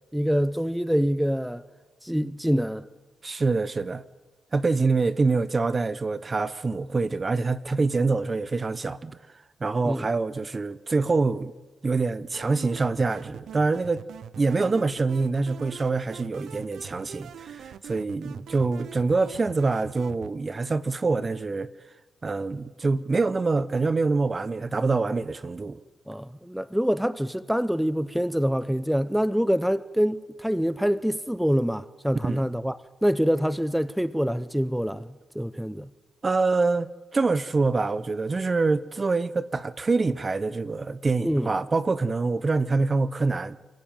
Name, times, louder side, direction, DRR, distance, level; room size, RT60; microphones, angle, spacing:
voice 1, 0.1-1.6 2.0-2.9 9.8-10.1 26.1-35.9 41.2-41.5, equal, ahead, 0.8 m, -25 dB
voice 2, 3.2-4.0 4.5-9.2 9.6-11.5 11.8-14.0 14.4-21.7 22.2-25.8 32.2-32.5 36.2-43.6, right 3 dB, 35° right, 1.1 m, -25 dB
sound 1, 12.3-20.3, right 8 dB, 80° right, 0.7 m, -43 dB
28.5 x 16.0 x 9.1 m
cardioid pair, 70°, 0 cm